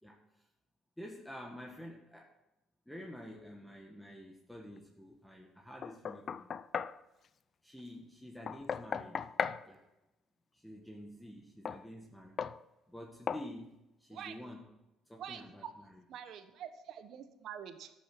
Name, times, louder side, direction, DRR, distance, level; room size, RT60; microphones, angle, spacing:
voice 1, 0.0-0.5 1.0-2.3 2.9-6.5 7.6-9.3 9.7-9.8 10.5-12.4 12.9-14.6 15.1-15.6 15.9-16.0, equal, 5° left, 0 dB, 1.8 m, -49 dB
Knock, 5.8-7.0 8.5-9.6 11.6-11.8 12.4-12.6 13.3-13.5, left 7 dB, 45° left, 0.5 m, -36 dB
voice 2, 16.1-17.9, right 9 dB, 65° right, 9 dB, 1.3 m, -46 dB
13.0 x 7.2 x 6.2 m, 0.97 s
supercardioid pair, 85°, 0 cm